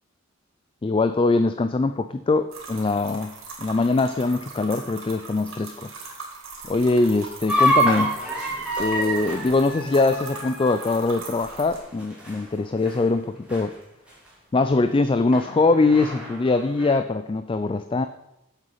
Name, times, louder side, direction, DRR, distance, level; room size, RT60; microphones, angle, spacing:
voice 1, 0.8-5.9 6.7-8.2 8.8-13.7 14.5-18.1, left 3 dB, 25° left, 11 dB, 0.3 m, -22 dB
sound 1, 2.5-11.8, right 3 dB, 80° right, 3.7 m, -40 dB
sound 2, 7.5-12.6 12.8-13.2 13.5-13.6 14.3-14.4 15.3-16.9, equal, 5° right, 3.1 m, -27 dB
9.4 x 8.1 x 5.6 m, 0.87 s
head